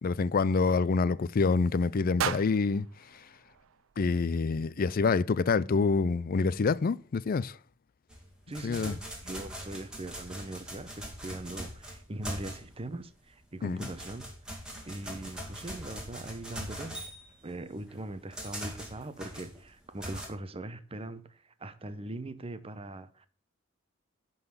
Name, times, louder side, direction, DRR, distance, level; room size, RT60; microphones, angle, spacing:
voice 1, 0.0-2.9 4.0-7.6 8.6-8.9 13.6-13.9, left 4 dB, 45° left, 0.4 m, -27 dB
sound 1, 2.2-4.3, right 8 dB, 70° right, 0.4 m, -37 dB
sound 2, 8.1-12.9 13.3-20.3, equal, 5° right, 2.3 m, -42 dB
voice 2, 8.5-14.2 14.8-17.2 17.4-23.3, right 2 dB, 30° right, 0.8 m, -41 dB
10.5 x 4.0 x 6.9 m
head